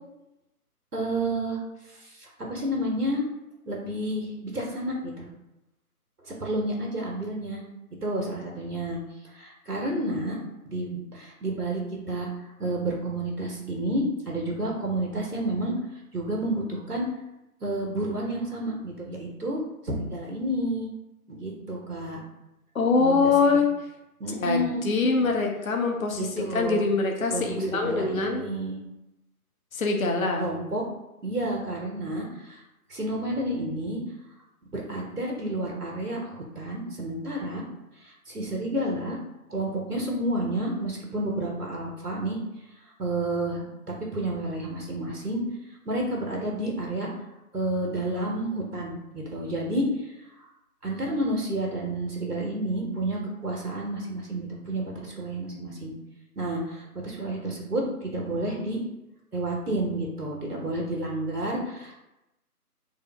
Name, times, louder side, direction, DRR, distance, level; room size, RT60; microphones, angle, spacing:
voice 1, 0.9-1.6 1.9-3.2 3.6-5.3 6.2-7.6 8.0-9.0 9.3-10.4 10.6-11.8 12.1-12.3 12.6-15.7 16.1-17.1 17.6-20.9 21.3-22.2 23.0-23.3 24.2-24.8 25.1-25.4 26.2-26.9 27.3-28.8 30.4-30.8 31.2-32.6 32.9-34.0 34.7-37.6 38.0-39.2 39.5-42.4 43.0-45.4 45.9-47.1 47.5-49.9 50.8-55.9 56.4-58.8 59.3-62.0, right 1 dB, 75° right, -1 dB, 1.1 m, -30 dB
voice 2, 22.7-23.7 24.4-28.4 29.7-30.5, left 4 dB, 60° left, 2 dB, 0.6 m, -24 dB
3.4 x 2.0 x 3.4 m, 0.93 s
figure-of-eight pair, 155°, 46 cm